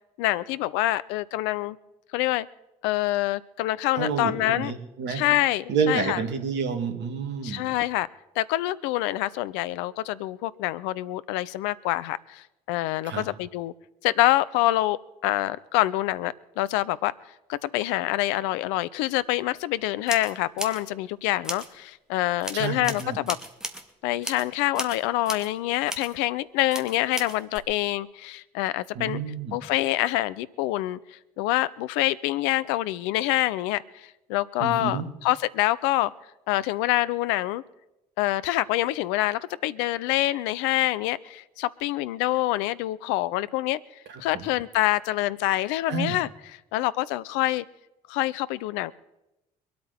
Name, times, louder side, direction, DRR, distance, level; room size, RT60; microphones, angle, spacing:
voice 1, 0.2-1.8 2.1-2.5 2.8-4.7 5.1-6.2 7.4-8.1 8.4-13.7 14.0-15.0 15.2-17.1 17.5-23.4 24.0-29.2 29.5-31.0 31.4-36.1 36.5-37.6 38.2-43.8 44.2-46.3 46.7-47.6 48.1-48.9, left 16 dB, 70° left, 18 dB, 0.7 m, -26 dB
voice 2, 4.0-5.2 5.7-7.7 13.0-13.3 22.5-23.2 28.9-29.6 34.6-35.1 44.1-44.5 45.9-46.2, right 6 dB, 60° right, 6 dB, 2.7 m, -29 dB
sound 1, 19.4-19.5 20.1-20.8 21.4-21.7 22.4-23.9 24.2-24.5 24.7-25.5 25.9-26.2 26.7-27.6, equal, 5° right, 2.7 m, -36 dB
25.0 x 8.6 x 4.3 m, 0.94 s
figure-of-eight pair, 45°, 20 cm